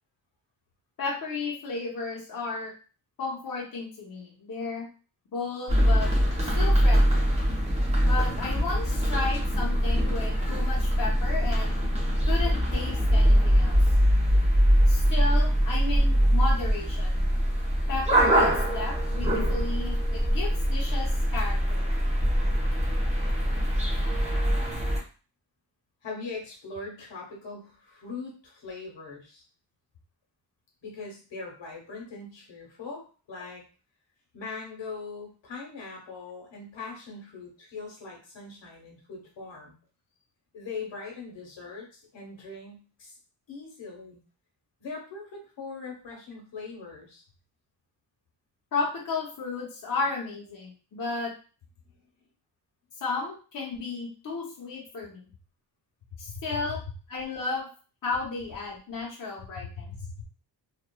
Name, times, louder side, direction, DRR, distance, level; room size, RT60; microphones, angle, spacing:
voice 1, 1.0-2.7 3.2-4.9 5.3-6.1 6.4-7.2 8.0-11.7 12.3-13.8 14.9-17.2 17.9-21.9 48.7-51.3 53.0-55.2 56.2-56.8 57.1-57.7 58.0-59.9, left 3 dB, 50° left, -4 dB, 0.8 m, -33 dB
sound 1, 5.7-25.0, equal, 15° right, 0.8 m, -23 dB
voice 2, 26.0-29.4 30.8-33.6 34.3-39.7 40.5-43.2 43.5-44.2 44.8-47.2 56.3-56.6 59.6-60.2, left 4 dB, 80° left, -1 dB, 1.1 m, -41 dB
3.0 x 2.4 x 2.2 m, 0.37 s
wide cardioid pair, 150°, 43 cm